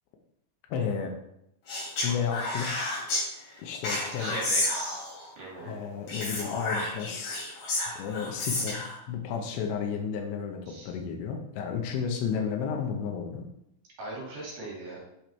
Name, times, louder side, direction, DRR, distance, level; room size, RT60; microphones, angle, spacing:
voice 1, 0.7-1.1 2.0-3.0 3.6-4.6 5.6-7.4 8.0-13.5, left 6 dB, 90° left, 2 dB, 3.2 m, -32 dB
Speech, 1.7-3.2 3.8-5.3 6.1-9.0, left 2 dB, 60° left, 5.0 m, -31 dB
voice 2, 4.2-5.0 5.4-5.8 8.5-8.6 10.7-10.9 14.0-15.0, right 2 dB, 55° right, -4 dB, 3.8 m, -38 dB
9.1 x 5.3 x 4.4 m, 0.80 s
omnidirectional pair, 4.9 m